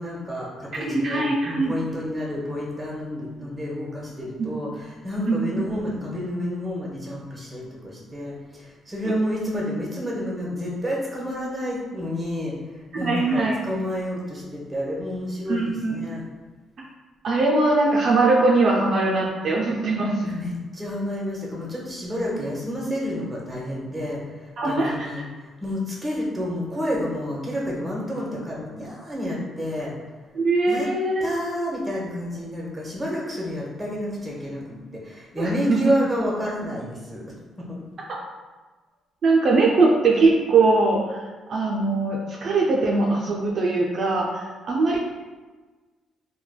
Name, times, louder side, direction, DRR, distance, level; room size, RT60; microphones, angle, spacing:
voice 1, 0.0-12.5 13.0-16.2 20.2-25.2 25.6-29.9 30.7-30.9 31.2-37.2 37.6-37.8, equal, 15° right, -4 dB, 0.8 m, -29 dB
voice 2, 0.9-1.8 4.4-4.5 5.3-5.6 12.9-13.5 15.5-15.9 17.2-20.3 24.6-25.1 30.3-31.3 35.4-35.8 39.2-41.2 41.5-45.0, right 3 dB, 55° right, -3 dB, 0.4 m, -21 dB
3.1 x 2.1 x 2.2 m, 1.3 s
cardioid pair, 90°, 0 cm